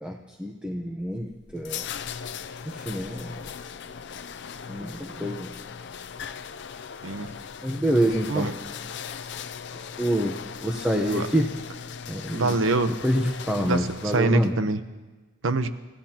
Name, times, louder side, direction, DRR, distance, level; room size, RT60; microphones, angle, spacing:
voice 1, 0.0-1.8 2.6-3.4 4.7-5.5 7.6-8.5 9.7-11.5 12.1-12.5 13.0-14.6, equal, 5° right, 1 dB, 0.9 m, -27 dB
sound 1, 1.0-14.6, left 7 dB, 60° left, 0.5 m, -39 dB
voice 2, 7.0-7.3 8.3-8.5 11.1-11.3 12.3-12.9 13.6-14.8 15.4-15.7, right 2 dB, 90° right, 9 dB, 0.9 m, -25 dB
30.0 x 15.5 x 2.9 m, 1.2 s
head